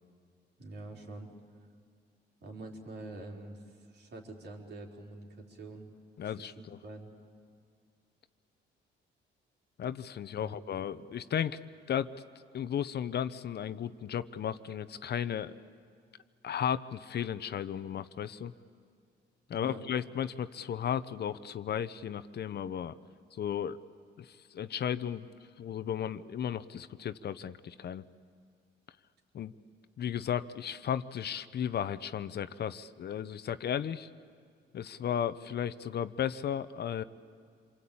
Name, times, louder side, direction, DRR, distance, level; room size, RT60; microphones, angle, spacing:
voice 1, 0.6-1.3 2.4-5.9 6.2-7.1 10.4-10.8 19.5-19.8, right 2 dB, 60° right, 0 dB, 4.4 m, -46 dB
voice 2, 6.2-6.8 9.8-11.6 11.9-12.1 12.5-15.5 16.4-18.5 19.5-22.9 23.3-23.8 24.2-25.3 25.6-28.1 29.3-29.5 30.0-34.1 34.7-37.0, left 9 dB, 55° left, 14 dB, 0.8 m, -34 dB
27.5 x 23.0 x 8.7 m, 2.1 s
cardioid pair, 90°, 20 cm